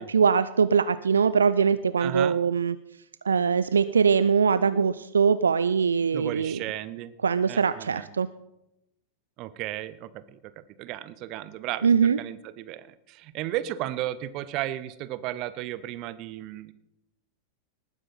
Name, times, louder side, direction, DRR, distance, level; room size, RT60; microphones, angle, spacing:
voice 1, 0.0-2.8 3.2-6.6 7.2-8.3 11.8-12.2, right 6 dB, 70° right, 15 dB, 0.4 m, -22 dB
voice 2, 2.0-2.4 6.1-7.1 7.5-8.1 9.4-10.4 10.8-16.7, right 14 dB, 40° right, 15 dB, 0.8 m, -34 dB
19.5 x 10.0 x 4.1 m, 0.90 s
figure-of-eight pair, 90°, 0 cm